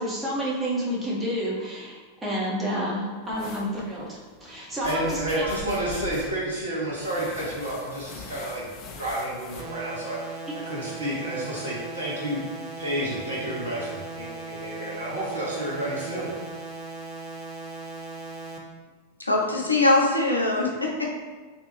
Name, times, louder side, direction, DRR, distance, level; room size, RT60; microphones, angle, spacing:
voice 1, 0.0-5.5, equal, 15° right, -5 dB, 0.9 m, -30 dB
sound 1, 3.3-9.6, left 4 dB, 35° left, 0.4 m, -42 dB
voice 2, 4.8-8.7 9.0-12.4 12.8-16.3, right 1 dB, 75° right, -6 dB, 0.8 m, -30 dB
sound 2, 9.6-18.6, right 3 dB, 30° right, 0.5 m, -38 dB
voice 3, 19.2-21.1, left 2 dB, 85° left, -2 dB, 0.6 m, -22 dB
3.4 x 2.5 x 3.0 m, 1.3 s
figure-of-eight pair, 90°, 0 cm